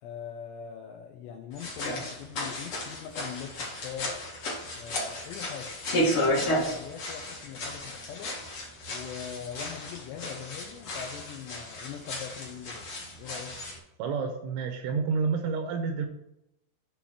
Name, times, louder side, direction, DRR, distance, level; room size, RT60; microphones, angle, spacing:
voice 1, 0.0-4.1 4.7-5.8 6.1-8.3 8.9-13.6, left 8 dB, 85° left, 3 dB, 2.5 m, -42 dB
sound 1, 1.5-13.8, left 1 dB, 65° left, 1.3 m, -33 dB
voice 2, 14.0-16.1, right 5 dB, 85° right, 5 dB, 2.9 m, -29 dB
8.6 x 3.9 x 6.1 m, 0.81 s
omnidirectional pair, 5.7 m